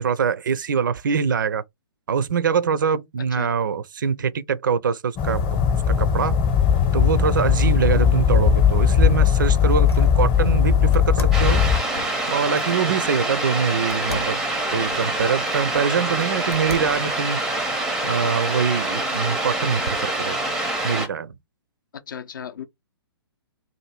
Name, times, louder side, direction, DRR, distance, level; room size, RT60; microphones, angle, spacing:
voice 1, 0.0-1.6 2.1-5.4 5.9-6.4 6.9-11.6 12.3-14.4 14.7-17.4 18.0-20.4 20.8-21.3, right 6 dB, 50° right, 0.4 m, -24 dB
sound 1, 5.2-11.8, left 8 dB, 25° left, 0.8 m, -18 dB
sound 2, 9.0-10.2 10.9-12.8 13.9-15.7 16.2-17.1, left 3 dB, 80° left, 0.9 m, -37 dB
sound 3, 11.3-21.1, right 2 dB, 5° right, 0.6 m, -26 dB
voice 2, 22.1-22.6, left 8 dB, 50° left, 0.5 m, -35 dB
2.7 x 2.6 x 4.3 m
figure-of-eight pair, 125°, 13 cm